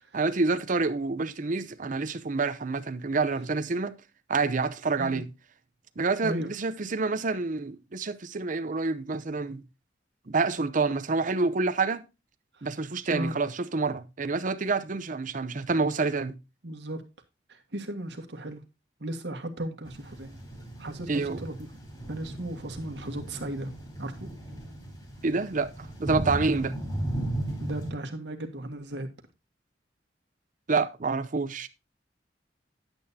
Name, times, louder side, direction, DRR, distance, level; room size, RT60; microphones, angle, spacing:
voice 1, 0.1-4.0 4.3-5.3 6.0-9.6 10.3-12.0 12.6-16.4 21.1-21.4 25.2-26.8 30.7-31.7, right 4 dB, 45° right, 0.7 m, -28 dB
voice 2, 6.2-6.5 12.6-12.7 13.1-13.4 16.6-17.0 17.5-18.6 19.0-20.4 20.8-21.5 22.1-23.7 24.0-24.3 27.6-29.1, right 1 dB, 70° right, 1.7 m, -36 dB
sound 1, 19.9-27.9, right 1 dB, 25° left, 3.8 m, -36 dB
10.5 x 9.0 x 2.8 m
head